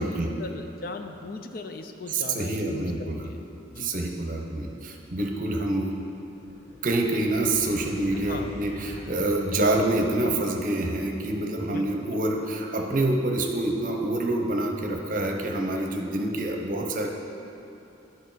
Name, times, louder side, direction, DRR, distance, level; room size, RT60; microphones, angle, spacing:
voice 1, 0.0-2.9 3.2-3.4 3.7-3.9 8.1-8.5 11.7-12.2, left 3 dB, 50° left, 6 dB, 0.5 m, -38 dB
voice 2, 2.1-3.2 3.8-5.9 6.8-17.1, right 2 dB, 45° right, 2 dB, 0.7 m, -27 dB
sound 1, 6.2-10.4, equal, 10° left, 1.0 m, -44 dB
12.5 x 5.3 x 4.0 m, 2.9 s
head